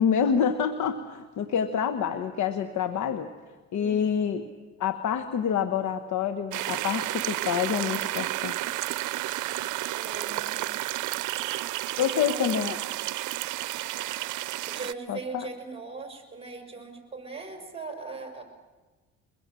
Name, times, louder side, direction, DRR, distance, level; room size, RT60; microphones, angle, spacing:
voice 1, 0.0-3.3 3.7-4.5 4.8-8.6 12.0-12.8 15.1-15.5, left 7 dB, 75° left, 8 dB, 1.3 m, -27 dB
voice 2, 3.7-4.2 9.9-10.7 12.0-12.6 14.7-18.4, right 3 dB, 20° right, 3 dB, 5.7 m, -40 dB
sound 1, 6.5-14.9, right 16 dB, 85° right, 0.6 m, -31 dB
23.5 x 22.0 x 7.6 m, 1.3 s
cardioid pair, 90°, 30 cm